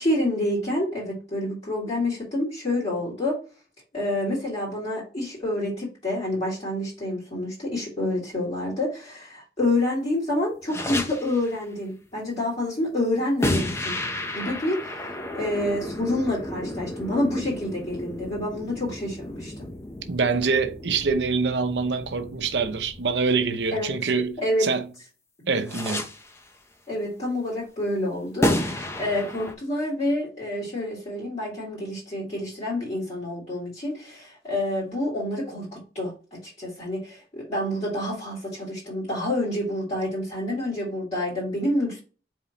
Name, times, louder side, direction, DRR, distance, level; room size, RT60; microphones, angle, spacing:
voice 1, 0.0-3.4 3.9-14.0 14.3-19.7 23.7-23.9 24.4-24.7 26.9-36.1 36.4-42.0, left 1 dB, 35° left, 2.2 m, -28 dB
sound 1, 10.7-11.6 13.4-24.3 25.7-26.5 28.4-29.5, left 1 dB, 15° left, 0.6 m, -32 dB
voice 2, 20.1-24.9 25.5-26.1, right 4 dB, 85° right, 0.7 m, -25 dB
5.1 x 3.6 x 2.8 m
head